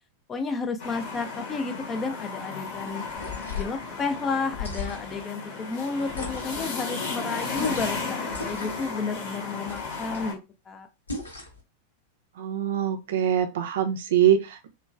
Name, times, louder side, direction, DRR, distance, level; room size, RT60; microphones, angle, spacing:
voice 1, 0.3-3.0 3.6-10.4 10.7-10.9, left 4 dB, 20° left, 8 dB, 0.4 m, -31 dB
sound 1, 0.8-10.3, left 4 dB, 45° left, 0.9 m, -34 dB
sound 2, 3.1-3.8 4.5-5.2 6.1-6.7 7.5-8.0 8.3-8.9 9.7-10.2 11.1-11.6, left 3 dB, 80° left, 1.0 m, -36 dB
voice 2, 12.4-14.7, right 10 dB, 60° right, 7 dB, 0.4 m, -23 dB
2.9 x 2.2 x 2.4 m, 0.26 s
figure-of-eight pair, 90°, 0 cm